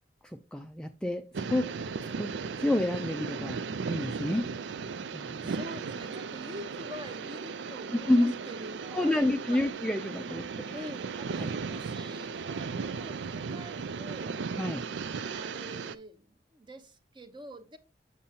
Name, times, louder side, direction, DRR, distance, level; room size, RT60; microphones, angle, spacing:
voice 1, 0.2-1.2 1.5-1.7 2.2-2.3 2.6-3.6 3.9-4.5 5.1-5.6 8.1-8.3 8.9-10.8 11.4-11.5 14.6-14.8, left 1 dB, 5° left, 0.4 m, -29 dB
sound 1, 1.3-16.0, right 5 dB, 75° right, 0.4 m, -36 dB
voice 2, 5.4-9.6 10.7-14.4 15.3-17.8, equal, 25° right, 0.8 m, -46 dB
7.5 x 7.0 x 2.8 m
head